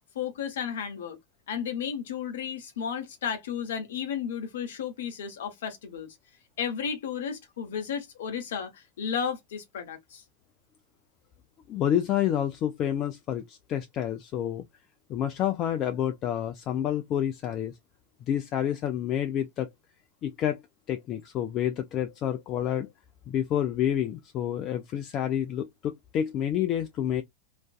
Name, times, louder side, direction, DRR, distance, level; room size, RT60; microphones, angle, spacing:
voice 1, 0.1-1.2 1.5-6.2 6.6-10.2, left 7 dB, 60° left, 0.7 m, -33 dB
voice 2, 11.7-14.6 15.1-17.7 18.3-19.7 20.2-20.6 20.9-22.9 23.3-27.2, left 10 dB, 35° left, 0.3 m, -29 dB
2.4 x 2.2 x 2.2 m
figure-of-eight pair, 90°, 0 cm